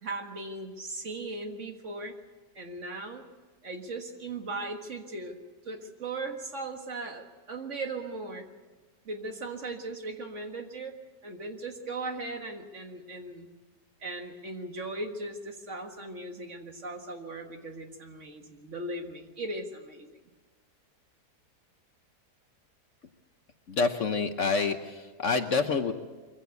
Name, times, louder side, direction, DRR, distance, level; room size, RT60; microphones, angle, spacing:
voice 1, 0.0-2.2 2.6-3.3 3.6-5.4 5.7-8.5 9.1-13.5 14.0-20.2, right 2 dB, 45° right, 4 dB, 1.9 m, -38 dB
voice 2, 23.7-25.9, left 4 dB, 55° left, 8 dB, 1.1 m, -27 dB
23.5 x 16.0 x 8.2 m, 1.3 s
omnidirectional pair, 1.8 m